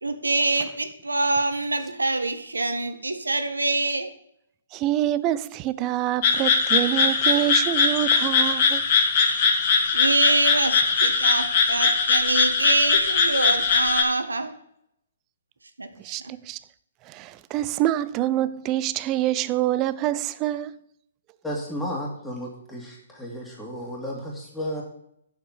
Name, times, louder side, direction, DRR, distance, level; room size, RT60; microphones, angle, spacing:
voice 1, 0.0-4.1 9.9-14.5 15.8-15.9, right 2 dB, 85° right, 1.3 m, -25 dB
voice 2, 4.7-8.9 16.0-16.6 17.0-20.8, right 13 dB, 25° right, 0.5 m, -26 dB
sound 1, 6.2-14.0, left 5 dB, 45° left, 2.0 m, -21 dB
voice 3, 21.4-24.8, equal, 5° left, 2.4 m, -33 dB
8.8 x 7.4 x 7.3 m
figure-of-eight pair, 130°, 0 cm